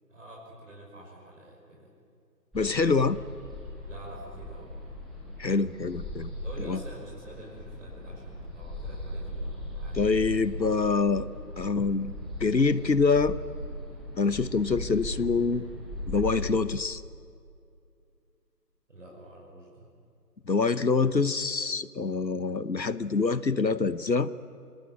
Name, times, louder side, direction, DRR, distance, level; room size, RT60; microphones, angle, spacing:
voice 1, 0.1-1.9 3.9-4.7 6.4-10.4 18.9-19.9, right 1 dB, 45° right, -3 dB, 5.9 m, -47 dB
voice 2, 2.5-3.2 5.4-6.3 6.7-6.8 10.0-11.3 11.6-12.1 12.4-13.4 14.2-15.6 16.1-17.0 20.5-24.3, left 4 dB, 90° left, 16 dB, 1.0 m, -25 dB
sound 1, 2.5-16.4, left 1 dB, ahead, 0.8 m, -38 dB
27.0 x 19.0 x 9.9 m, 2.4 s
figure-of-eight pair, 155°, 50 cm